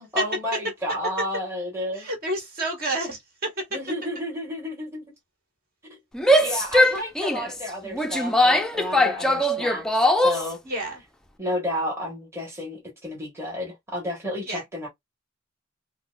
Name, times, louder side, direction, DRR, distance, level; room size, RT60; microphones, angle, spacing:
voice 1, 0.0-2.1 3.7-5.1 5.9-6.0 6.4-9.8 10.2-10.6 11.4-14.9, left 1 dB, 15° right, 1.2 m, -31 dB
voice 2, 1.9-3.6 6.8-7.0 10.6-11.0 14.5-14.6, right 1 dB, 50° right, 1.7 m, -30 dB
Female speech woman speaking / Yell, 6.1-10.5, left 1 dB, 5° left, 0.4 m, -21 dB
5.6 x 2.1 x 2.4 m
head